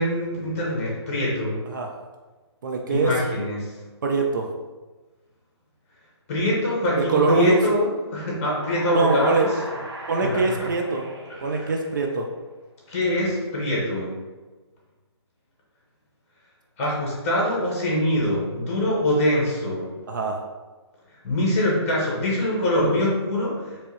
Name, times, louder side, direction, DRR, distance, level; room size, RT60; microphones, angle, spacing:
voice 1, 0.0-1.6 2.9-3.7 6.3-9.5 10.3-10.4 11.5-11.7 12.9-14.1 16.8-19.9 21.2-23.6, left 1 dB, 30° left, -4 dB, 1.3 m, -24 dB
voice 2, 2.6-3.1 4.0-4.5 7.0-7.6 8.9-9.5 10.1-11.0 11.4-12.3 20.1-20.4, right 3 dB, 45° right, 2 dB, 0.4 m, -23 dB
sound 1, 8.4-12.3, right 1 dB, 65° right, 0.8 m, -37 dB
3.5 x 3.0 x 3.0 m, 1.3 s
hypercardioid pair, 155°, 14 cm